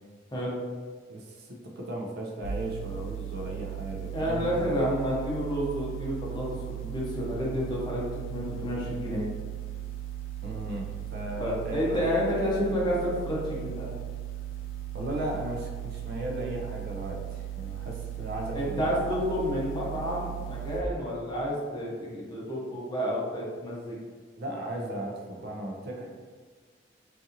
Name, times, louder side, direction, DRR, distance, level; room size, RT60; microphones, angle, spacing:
voice 1, 1.1-4.4 10.4-12.1 14.9-18.8 24.4-26.1, right 1 dB, 55° right, 0 dB, 0.4 m, -36 dB
sound 1, 2.4-20.8, right 12 dB, 90° left, 0.3 m, -37 dB
voice 2, 4.1-9.3 11.4-13.9 18.5-24.0, equal, 25° left, -6 dB, 0.7 m, -30 dB
2.7 x 2.5 x 2.6 m, 1.5 s
head